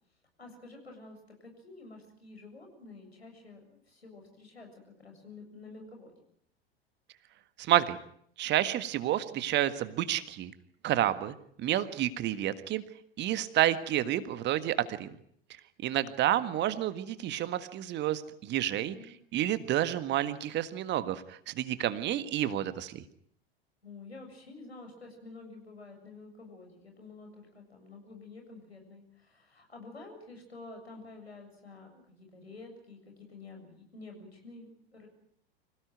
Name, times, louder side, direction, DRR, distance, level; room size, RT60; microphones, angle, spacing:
voice 1, 0.4-6.1 18.8-19.2 23.8-35.1, left 3 dB, 85° left, 3 dB, 7.4 m, -49 dB
voice 2, 7.6-8.0 8.4-10.5 10.8-12.8 13.2-15.1 15.8-19.0 19.3-23.0, right 12 dB, 35° right, 13 dB, 1.7 m, -29 dB
26.0 x 17.0 x 9.4 m, 0.66 s
figure-of-eight pair, 85°, 31 cm